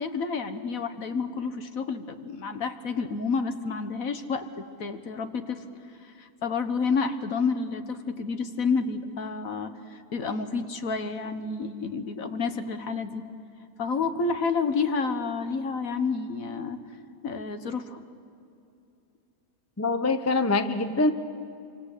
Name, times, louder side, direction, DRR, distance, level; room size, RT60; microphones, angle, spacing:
voice 1, 0.0-5.6 6.0-13.2 13.8-16.8 17.2-18.0, left 4 dB, 60° left, 8 dB, 1.7 m, -30 dB
voice 2, 19.8-21.1, left 3 dB, 15° left, 9 dB, 0.6 m, -24 dB
27.5 x 24.5 x 8.3 m, 2.6 s
omnidirectional pair, 1.7 m